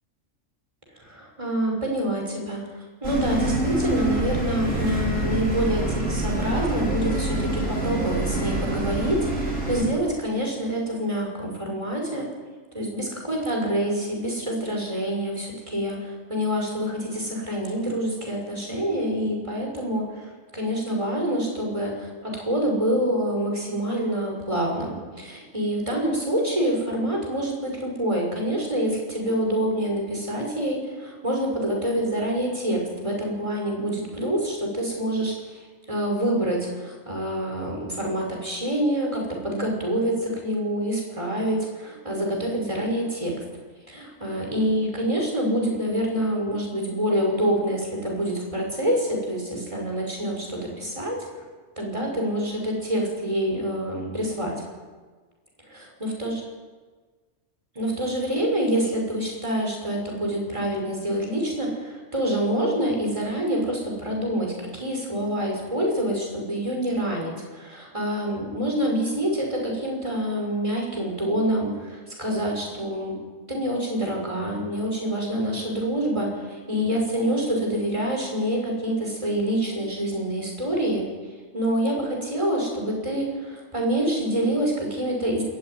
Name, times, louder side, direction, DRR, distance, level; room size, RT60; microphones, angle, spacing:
voice 1, 1.0-2.6 3.0-12.3 12.7-43.4 43.9-51.4 51.8-54.6 55.7-56.4 57.8-73.2 73.5-81.1 81.5-85.4, right 1 dB, 25° right, 0 dB, 6.0 m, -26 dB
sound 1, 3.0-9.8, right 1 dB, 90° right, 5.0 m, -26 dB
21.0 x 14.5 x 9.5 m, 1.4 s
omnidirectional pair, 1.3 m